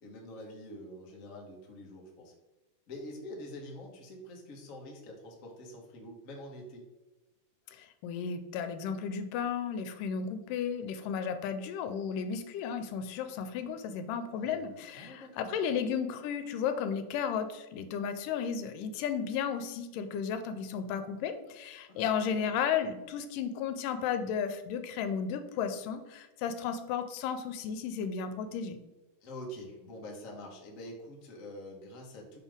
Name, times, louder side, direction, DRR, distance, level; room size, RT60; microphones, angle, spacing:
voice 1, 0.0-2.3 2.9-6.8 14.3-15.8 21.9-22.0 22.3-22.5 29.2-32.4, left 1 dB, 60° left, -1 dB, 0.8 m, -46 dB
voice 2, 7.7-28.8, left 7 dB, 85° left, 9 dB, 2.2 m, -34 dB
6.5 x 5.5 x 3.6 m, 1.1 s
omnidirectional pair, 3.8 m